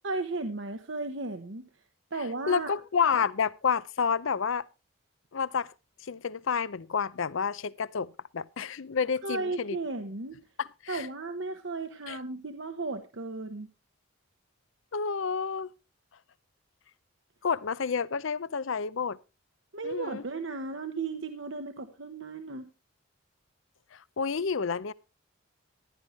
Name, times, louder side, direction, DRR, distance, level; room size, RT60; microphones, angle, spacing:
voice 1, 0.0-1.7 2.1-2.7 9.2-10.4 10.9-13.7 19.7-22.7, right 3 dB, 60° right, 1.0 m, -35 dB
voice 2, 2.5-4.7 5.3-5.7 6.0-9.8 10.6-11.1 12.1-12.2 14.9-15.7 17.4-19.2 19.8-20.2 23.9-24.9, left 6 dB, 65° left, 0.5 m, -29 dB
15.0 x 11.0 x 3.1 m
head